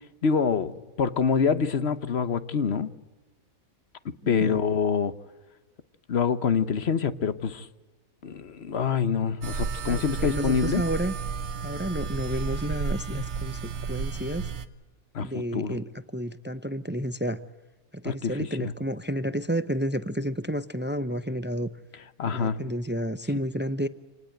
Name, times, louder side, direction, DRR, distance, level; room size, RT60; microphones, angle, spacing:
voice 1, 0.2-0.7 1.0-2.9 4.0-5.1 6.1-7.7 8.2-10.8 15.1-15.8 18.0-18.3 18.6-18.7 22.2-22.6, left 6 dB, 50° left, 1.2 m, -26 dB
voice 2, 4.2-4.6 9.8-11.1 11.6-14.5 15.2-17.4 17.9-21.7 22.2-23.9, equal, 15° right, 0.4 m, -31 dB
sound 1, 9.4-14.7, right 5 dB, 55° right, 1.3 m, -32 dB
27.0 x 19.0 x 7.9 m
omnidirectional pair, 1.4 m